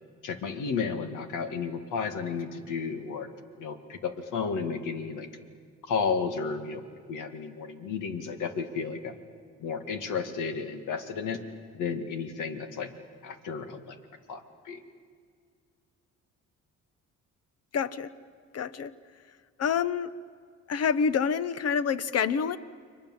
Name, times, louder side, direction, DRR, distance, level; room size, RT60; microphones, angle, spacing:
voice 1, 0.2-3.3 3.6-5.3 5.9-9.2 9.6-11.4 11.7-12.9 13.2-14.0 14.3-14.8, left 5 dB, 85° left, 7 dB, 2.0 m, -33 dB
voice 2, 17.7-18.1 18.5-18.9 19.6-20.1 20.7-22.6, left 6 dB, 55° left, 15 dB, 1.0 m, -27 dB
30.0 x 23.0 x 7.6 m, 2.1 s
cardioid pair, 90°, 30 cm